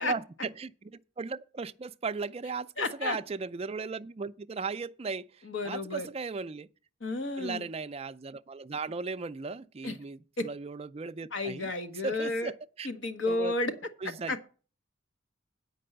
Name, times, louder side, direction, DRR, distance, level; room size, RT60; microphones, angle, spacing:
voice 1, 0.0-6.7 7.4-11.7 12.0-12.9 13.3-13.5 14.0-14.4, right 4 dB, 30° right, 0.4 m, -37 dB
voice 2, 2.8-3.2 5.4-6.1 7.0-7.7 9.8-10.0 10.4-10.5 11.3-12.5 12.8-13.7 14.3-14.4, left 2 dB, 70° left, 1.2 m, -31 dB
8.5 x 5.3 x 7.8 m
head